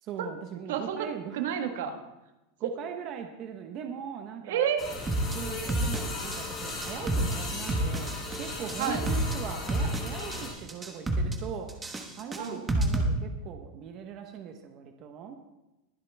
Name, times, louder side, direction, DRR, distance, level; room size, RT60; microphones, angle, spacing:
voice 1, 0.0-1.4 2.6-4.7 5.3-8.1 8.4-11.7 12.1-15.3, right 8 dB, 35° right, 5 dB, 1.0 m, -40 dB
voice 2, 0.7-1.1 1.3-1.9 2.6-2.7 4.4-4.9 8.8-9.0 12.4-12.6, right 8 dB, 75° right, 5 dB, 1.5 m, -30 dB
sound 1, 4.8-10.5, left 2 dB, 15° left, 3.4 m, -37 dB
sound 2, 5.1-5.3 5.7-6.4 6.7-7.3 7.7-8.4 8.7-9.3 9.7-10.4 10.7-11.4 11.7-13.1, right 1 dB, 10° right, 1.2 m, -28 dB
21.5 x 7.5 x 3.4 m, 0.99 s
supercardioid pair, 165°, 0 cm